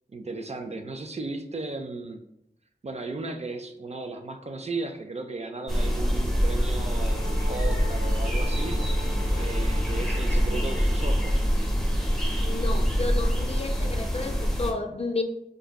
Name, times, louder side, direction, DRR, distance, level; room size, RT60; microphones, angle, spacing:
voice 1, 0.1-2.2 2.8-8.8 9.3-11.5, right 3 dB, 40° right, 5 dB, 0.4 m, -35 dB
sound 1, 5.7-14.7, equal, ahead, 0.8 m, -25 dB
sound 2, 6.6-11.6, left 5 dB, 60° right, 1.3 m, -43 dB
voice 2, 12.4-15.2, left 3 dB, 35° left, 5 dB, 0.4 m, -32 dB
4.6 x 2.6 x 2.2 m, 0.83 s
wide cardioid pair, 55°, 17 cm